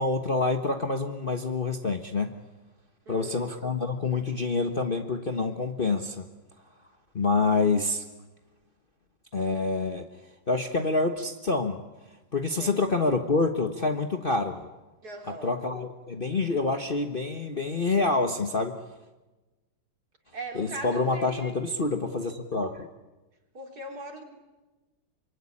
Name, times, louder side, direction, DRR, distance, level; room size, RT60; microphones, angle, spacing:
voice 1, 0.0-2.3 3.1-6.3 7.1-8.0 9.3-10.1 10.5-11.8 12.3-14.7 15.4-18.8 20.5-22.9, left 3 dB, 35° left, 5 dB, 1.2 m, -27 dB
voice 2, 3.1-3.5 12.4-12.8 15.0-15.6 20.3-21.5 23.5-24.2, right 2 dB, 55° right, 3 dB, 3.9 m, -39 dB
25.0 x 24.0 x 9.9 m, 1.2 s
omnidirectional pair, 2.0 m